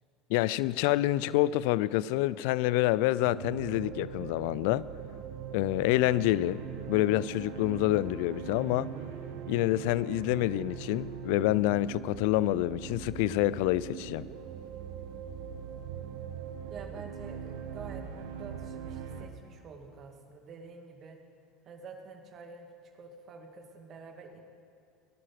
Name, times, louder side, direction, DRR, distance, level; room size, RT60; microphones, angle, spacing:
voice 1, 0.3-4.9 5.5-6.6 6.9-8.9 9.5-14.3, left 16 dB, 70° left, 0.4 m, -27 dB
sound 1, 3.2-19.3, right 8 dB, 70° right, 1.4 m, -41 dB
voice 2, 16.7-21.2 21.6-24.4, right 4 dB, 45° right, 2.2 m, -48 dB
19.0 x 11.0 x 6.0 m
hypercardioid pair, 90°, 0 cm